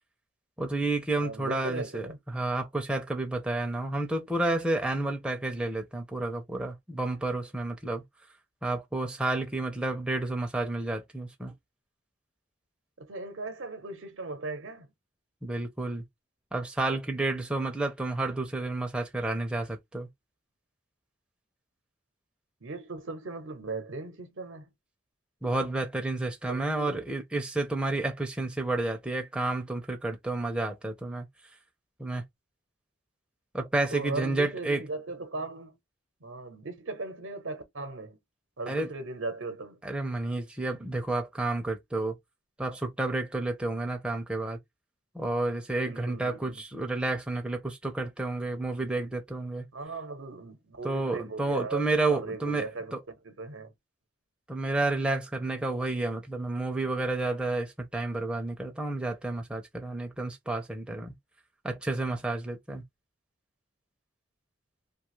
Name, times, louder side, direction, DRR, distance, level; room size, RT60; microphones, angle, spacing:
voice 1, 0.6-8.0 8.6-11.5 15.4-16.0 16.5-20.1 25.4-31.3 32.0-32.3 33.5-34.8 38.7-38.9 39.8-42.2 42.6-44.6 45.1-49.7 50.8-53.0 54.5-61.1 61.6-62.8, right 2 dB, 5° right, 0.5 m, -30 dB
voice 2, 1.2-2.2 13.0-14.9 22.6-24.7 26.5-27.0 33.9-35.8 36.2-38.2 38.6-39.8 45.8-46.6 49.7-53.7, right 3 dB, 80° right, 0.7 m, -38 dB
2.8 x 2.3 x 3.0 m
head